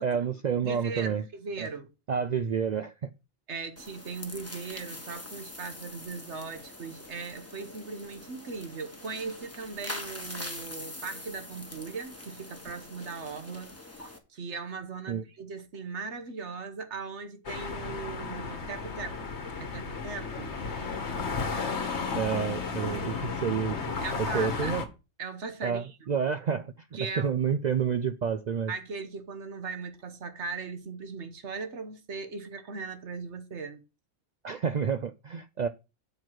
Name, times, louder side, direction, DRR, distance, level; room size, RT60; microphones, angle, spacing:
voice 1, 0.0-1.2 1.6-1.7 2.1-3.1 15.1-15.2 22.1-23.9 24.3-24.9 25.6-26.7 27.0-28.7 34.4-35.7, right 7 dB, 80° right, 0.3 m, -29 dB
voice 2, 0.6-1.9 3.5-19.2 19.6-20.6 24.0-24.8 25.2-26.1 26.9-27.3 28.7-33.8, right 4 dB, 65° right, 1.4 m, -39 dB
sound 1, 3.8-14.2, left 1 dB, 10° left, 1.2 m, -43 dB
sound 2, 17.5-24.9, left 4 dB, 60° left, 1.5 m, -33 dB
7.7 x 4.5 x 6.2 m
omnidirectional pair, 1.3 m